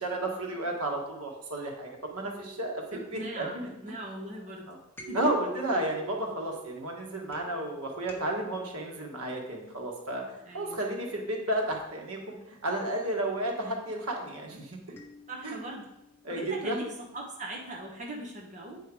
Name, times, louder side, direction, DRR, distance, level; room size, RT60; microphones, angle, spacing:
voice 1, 0.0-3.7 4.7-4.8 5.1-10.2 10.5-14.8 15.4-15.6 16.2-16.8, right 1 dB, 85° right, 1 dB, 1.5 m, -32 dB
sound 1, 2.1-4.0 4.9-10.7 11.7-13.1 15.0-16.5, right 4 dB, 10° left, 0.9 m, -48 dB
voice 2, 2.9-3.6 3.8-4.7 5.1-5.2 10.4-10.8 15.3-15.9 16.3-16.8 17.1-18.8, right 1 dB, 35° right, -2 dB, 1.0 m, -40 dB
8.6 x 4.6 x 4.8 m, 0.86 s
head